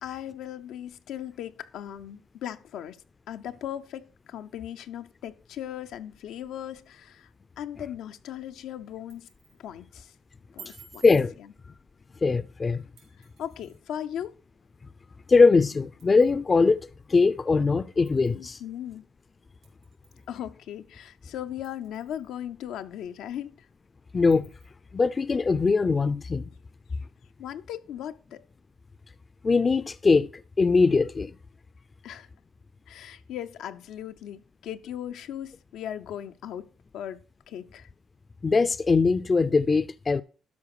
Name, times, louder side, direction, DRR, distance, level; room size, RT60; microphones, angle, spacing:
voice 1, 0.0-7.3 7.6-9.3 9.6-10.1 10.5-11.0 13.2-14.3 18.2-19.0 20.3-23.7 27.4-28.4 32.0-32.3 32.9-36.7 36.9-37.9, left 10 dB, 85° left, 0.6 m, -38 dB
sound 1, 8.9-9.6 10.6-11.3 13.0-13.8 15.3-15.4 16.0-16.4 17.0-17.1 18.0-18.4 19.6-20.3 20.7-20.8 21.6-22.3 22.8-22.9 23.3-23.4 24.3-24.7, right 7 dB, 80° right, 3.5 m, -51 dB
voice 2, 11.0-11.4 12.2-12.8 15.3-18.6 24.1-24.5 24.9-26.5 29.4-30.3 30.6-31.3 38.4-40.2, left 4 dB, 35° left, 0.5 m, -21 dB
12.5 x 4.9 x 4.8 m
cardioid pair, 90°, 0 cm